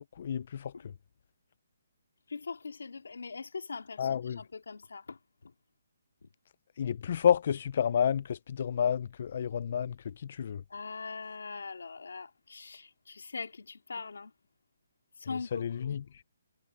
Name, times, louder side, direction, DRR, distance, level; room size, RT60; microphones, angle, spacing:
voice 1, 0.2-0.7 4.0-4.4 6.8-10.6 15.5-16.0, left 8 dB, 45° left, 0.3 m, -30 dB
voice 2, 2.3-5.5 6.2-6.3 10.7-14.3 15.2-16.0, left 4 dB, 90° left, 2.4 m, -42 dB
hypercardioid pair, 170°, 0 cm